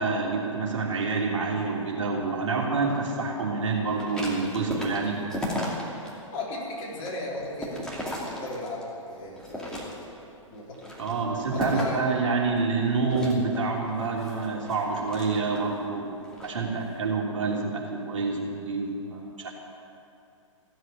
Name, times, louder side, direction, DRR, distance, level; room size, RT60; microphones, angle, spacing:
voice 1, 0.0-5.2 11.0-16.1 16.4-19.5, right 4 dB, 65° right, -2 dB, 3.1 m, -27 dB
sound 1, 3.9-6.1 6.5-8.9 9.3-10.2 10.7-12.1 13.1-15.7 16.2-16.5, equal, 5° left, 2.5 m, -35 dB
voice 2, 6.3-7.9 8.2-9.8 10.5-10.9 11.5-12.0, left 2 dB, 35° left, -4 dB, 3.9 m, -35 dB
15.5 x 8.0 x 9.0 m, 2.7 s
figure-of-eight pair, 120°, 17 cm